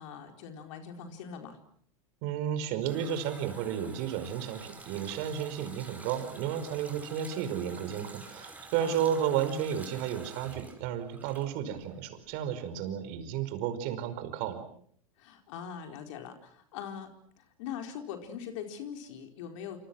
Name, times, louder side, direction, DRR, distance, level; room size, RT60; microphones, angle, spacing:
voice 1, 0.0-1.6 8.8-9.1 15.2-17.1 17.4-19.8, left 8 dB, 60° left, 5 dB, 4.5 m, -42 dB
voice 2, 2.2-14.7, right 9 dB, 55° right, 10 dB, 5.2 m, -32 dB
Water tap faucet, 2.4-12.0 12.2-12.4, right 2 dB, 10° right, 5.0 m, -49 dB
28.0 x 28.0 x 6.2 m, 0.62 s
hypercardioid pair, 95°, 18 cm